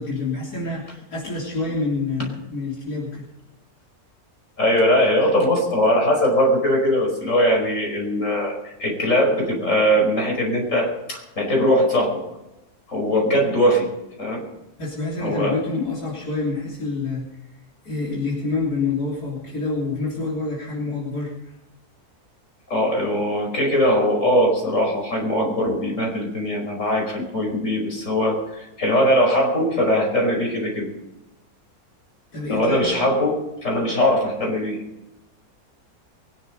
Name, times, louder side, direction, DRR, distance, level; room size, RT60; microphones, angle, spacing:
voice 1, 0.0-3.3 14.8-17.3 17.8-21.5 32.3-32.9, left 3 dB, 80° left, -5 dB, 3.9 m, -27 dB
voice 2, 4.6-12.2 12.9-13.9 14.2-14.4 15.2-15.6 22.7-30.9 32.5-34.8, equal, 55° left, 0 dB, 5.6 m, -21 dB
23.0 x 11.0 x 5.2 m, 0.94 s
omnidirectional pair, 1.6 m